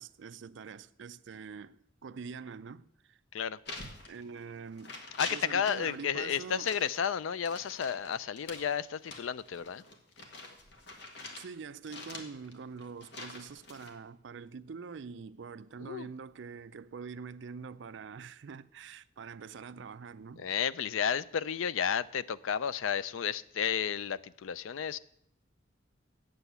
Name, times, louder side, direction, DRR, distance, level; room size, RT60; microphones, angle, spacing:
voice 1, 0.0-3.2 4.1-5.0 5.3-6.7 11.3-20.5, right 5 dB, 65° right, 0.4 m, -45 dB
sound 1, 3.6-4.5 4.8-6.0 6.4-11.5 11.9-13.9, left 2 dB, 60° left, 1.7 m, -45 dB
voice 2, 5.2-9.8 15.8-16.1 20.4-25.0, left 7 dB, 90° left, 0.4 m, -32 dB
8.0 x 7.7 x 8.2 m
head